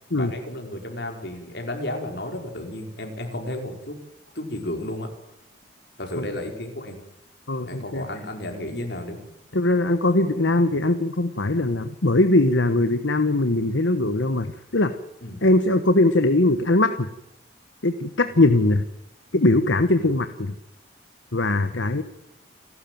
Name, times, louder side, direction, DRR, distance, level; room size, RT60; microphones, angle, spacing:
voice 1, 0.1-4.0 4.3-5.1 6.0-7.0 7.6-9.3 9.9-10.9 15.2-15.4 18.3-18.4 20.0-20.2, left 1 dB, 60° left, 4 dB, 5.0 m, -33 dB
voice 2, 7.5-8.1 9.5-14.9 15.4-17.1 17.8-18.8 19.3-20.5 21.3-22.0, left 2 dB, 80° left, 9 dB, 1.3 m, -21 dB
29.0 x 12.5 x 9.3 m, 0.83 s
head